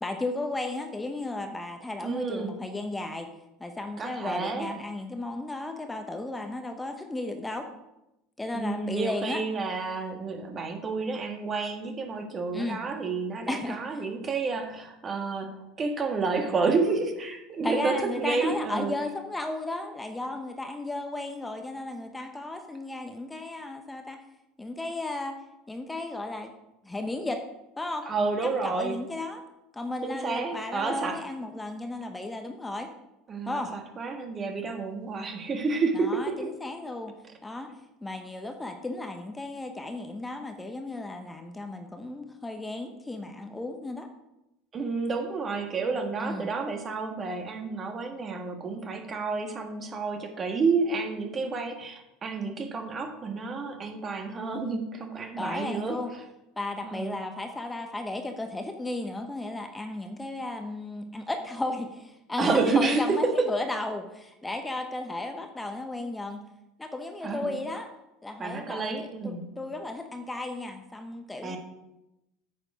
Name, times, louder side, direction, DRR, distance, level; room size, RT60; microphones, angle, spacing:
voice 1, 0.0-3.3 3.6-7.7 8.4-9.4 12.5-12.8 13.5-13.8 17.6-24.2 24.6-25.4 25.7-26.5 26.8-27.4 27.8-28.1 28.4-29.4 29.7-32.9 33.5-33.7 35.9-37.1 37.4-37.7 38.0-44.1 46.2-46.5 55.4-56.1 56.6-66.4 66.8-67.9 68.2-71.6, left 2 dB, 10° left, 6 dB, 1.0 m, -34 dB
voice 2, 2.0-2.6 4.0-4.7 8.5-18.9 28.0-29.0 30.0-31.2 33.3-36.5 44.7-56.2 56.8-57.2 62.4-63.1 67.2-67.6 68.4-69.5 71.4-71.6, right 4 dB, 30° right, 4 dB, 1.7 m, -30 dB
9.1 x 6.4 x 5.1 m, 0.91 s
hypercardioid pair, 75°, 0 cm